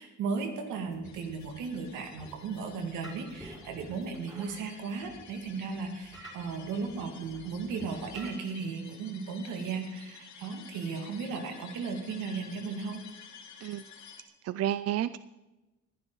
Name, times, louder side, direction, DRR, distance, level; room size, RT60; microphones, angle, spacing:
voice 1, 0.0-13.0, right 5 dB, 90° right, 5 dB, 2.3 m, -36 dB
sound 1, 0.8-8.3, right 1 dB, 15° right, 5.0 m, -51 dB
sound 2, 1.0-14.2, left 7 dB, 65° left, 1.9 m, -52 dB
voice 2, 14.4-15.2, right 11 dB, 55° right, 15 dB, 0.5 m, -30 dB
20.0 x 11.0 x 4.0 m, 1.0 s
cardioid pair, 90°, 30 cm